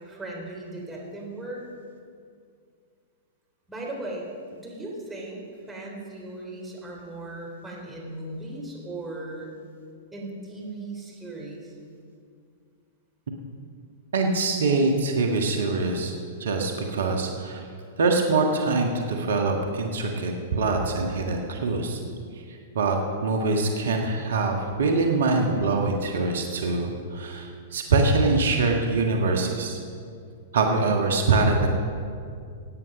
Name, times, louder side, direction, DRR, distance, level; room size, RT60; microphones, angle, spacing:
voice 1, 0.0-1.6 3.7-5.4 5.7-9.5 10.1-11.7, right 2 dB, 10° right, -3 dB, 3.5 m, -37 dB
voice 2, 14.1-16.1 16.4-17.6 18.0-22.0 22.7-29.8 30.5-31.8, right 3 dB, 70° right, 2 dB, 1.5 m, -24 dB
16.5 x 9.4 x 5.3 m, 2.3 s
hypercardioid pair, 110°, 0 cm